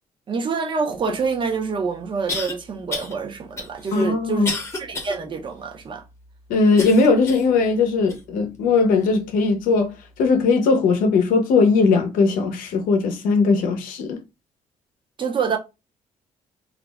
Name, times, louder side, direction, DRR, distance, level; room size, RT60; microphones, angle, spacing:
voice 1, 0.3-6.0 15.2-15.6, right 5 dB, 35° right, 0.6 m, -27 dB
sound 1, 1.3-1.4 2.3-2.5 2.9-3.1 3.6-5.2 5.6-5.7 6.8-7.5 8.1-8.2 9.0-9.1, left 2 dB, 20° left, 0.8 m, -30 dB
voice 2, 3.9-4.5 6.5-14.2, left 4 dB, 85° left, 0.6 m, -19 dB
2.4 x 2.0 x 3.3 m
cardioid pair, 115°, 14 cm